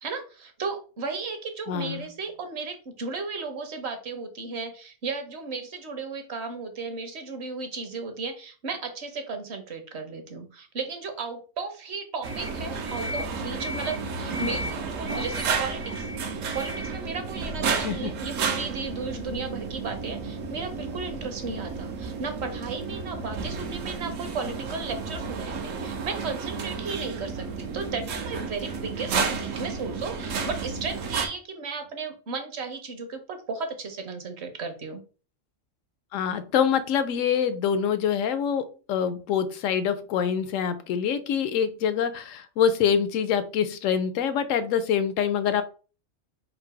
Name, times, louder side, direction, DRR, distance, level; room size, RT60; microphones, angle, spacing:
voice 1, 0.0-15.9 16.5-35.0, right 4 dB, 60° right, 6 dB, 1.1 m, -35 dB
voice 2, 1.7-2.1 17.8-18.1 36.1-45.6, left 8 dB, 75° left, 12 dB, 0.9 m, -25 dB
sound 1, 12.2-31.3, right 4 dB, 75° right, 1.1 m, -32 dB
3.8 x 2.6 x 4.6 m, 0.37 s
omnidirectional pair, 1.4 m